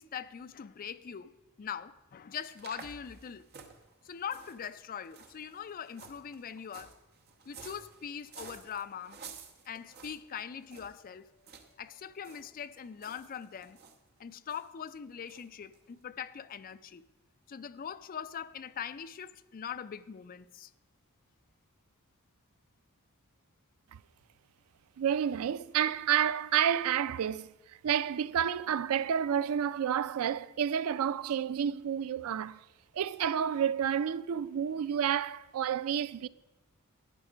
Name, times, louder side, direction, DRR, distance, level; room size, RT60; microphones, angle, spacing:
voice 1, 0.0-3.4 4.0-6.9 7.5-9.2 9.7-11.3 11.8-13.8 14.2-17.0 17.5-20.7, left 8 dB, 40° left, 0.4 m, -42 dB
sound 1, 2.3-11.0 11.4-11.7 12.0-12.5 12.7-14.0 14.5-14.7 15.3-15.4 15.7-15.8, right 5 dB, 45° right, 1.1 m, -52 dB
voice 2, 25.0-32.6 32.9-36.3, right 9 dB, 70° right, 0.4 m, -30 dB
12.0 x 8.8 x 5.0 m
head